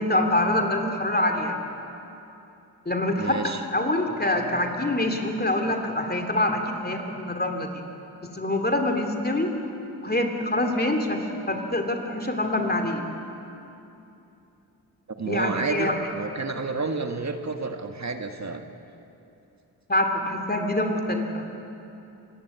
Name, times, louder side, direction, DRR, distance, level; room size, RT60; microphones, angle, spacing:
voice 1, 0.0-1.6 2.9-7.8 8.3-9.5 10.0-13.0 15.3-15.9 19.9-21.4, left 1 dB, 20° left, 4 dB, 2.7 m, -25 dB
voice 2, 3.2-3.6 15.2-18.6, right 3 dB, 40° right, 6 dB, 1.7 m, -30 dB
25.5 x 11.0 x 9.5 m, 2.9 s
supercardioid pair, 45°, 42 cm